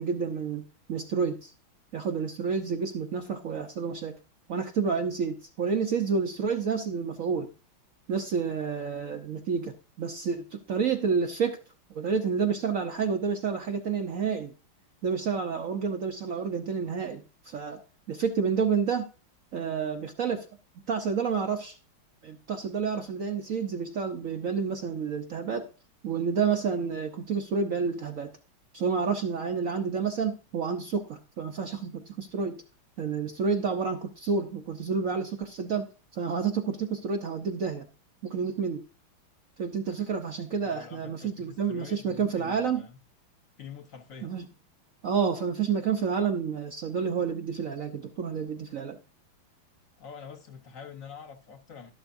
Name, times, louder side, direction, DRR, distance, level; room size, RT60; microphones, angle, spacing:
voice 1, 0.0-1.5 1.9-4.2 4.5-7.5 8.1-11.6 11.9-14.5 15.0-17.8 18.1-19.1 19.5-20.5 20.9-21.8 22.2-25.7 26.0-28.3 28.7-32.6 33.0-37.9 38.2-38.8 39.6-42.8 44.2-44.4 45.0-49.0, right 6 dB, 65° right, 0.8 m, -29 dB
voice 2, 40.6-43.0 43.6-44.3 50.0-51.9, left 6 dB, 45° left, 1.2 m, -46 dB
12.5 x 11.5 x 2.6 m
omnidirectional pair, 2.3 m